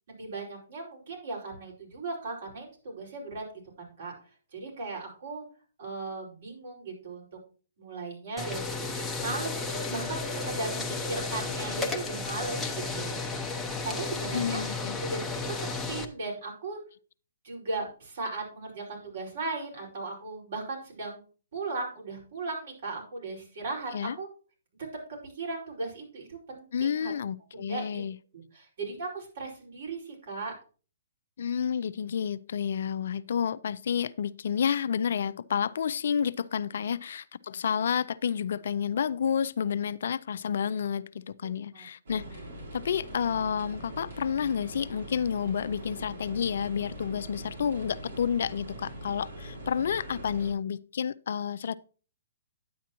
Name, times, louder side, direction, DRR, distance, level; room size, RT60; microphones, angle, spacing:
voice 1, 0.2-5.4 5.8-7.3 7.8-8.7 9.2-13.2 13.8-14.6 15.0-16.8 17.4-21.2 21.5-24.3 24.8-24.9 25.2-27.1 27.5-28.0 28.3-30.5 36.8-37.0 41.4-41.8, right 3 dB, 60° right, 5.0 m, -37 dB
sound 1, 8.4-16.0, left 3 dB, 5° left, 0.8 m, -33 dB
voice 2, 14.3-15.0 23.9-24.2 26.7-28.2 31.4-42.4 42.7-51.8, left 7 dB, 65° left, 0.4 m, -30 dB
sound 2, 42.1-50.5, right 1 dB, 75° right, 4.5 m, -42 dB
10.0 x 8.2 x 3.0 m
hypercardioid pair, 150°, 0 cm